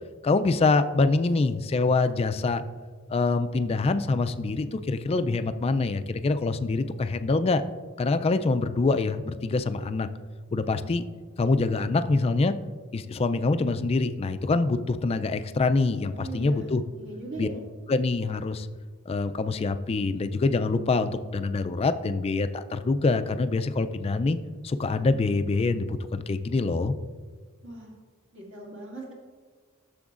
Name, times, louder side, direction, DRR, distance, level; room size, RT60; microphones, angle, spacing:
voice 1, 0.2-2.6 3.1-7.6 8.0-10.1 10.5-11.0 11.4-12.5 12.9-16.8 17.4-17.5 17.9-18.7 19.1-24.4 24.6-27.0, left 3 dB, 25° left, 10 dB, 0.3 m, -25 dB
voice 2, 16.1-16.7 17.0-17.6 27.6-27.9 28.3-29.1, right 2 dB, 60° right, -3 dB, 2.3 m, -39 dB
12.0 x 7.0 x 2.5 m, 1.5 s
head